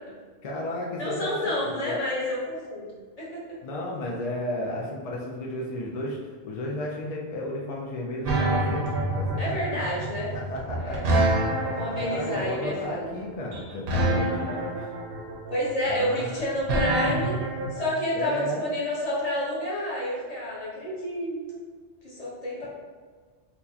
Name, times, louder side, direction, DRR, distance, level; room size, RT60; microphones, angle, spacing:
voice 1, 0.4-2.0 3.6-6.2 6.4-9.6 10.3-11.1 11.4-14.7 15.9-16.4 18.1-18.6, left 1 dB, 65° left, -3 dB, 0.3 m, -33 dB
voice 2, 1.0-2.9 3.2-3.4 9.4-10.3 10.8-11.1 11.6-13.1 15.5-17.3 17.7-21.6 22.0-22.7, left 1 dB, 35° left, -7 dB, 1.0 m, -29 dB
sound 1, 8.3-17.8, right 2 dB, 60° right, 0.8 m, -26 dB
4.3 x 2.1 x 2.7 m, 1.5 s
omnidirectional pair, 1.2 m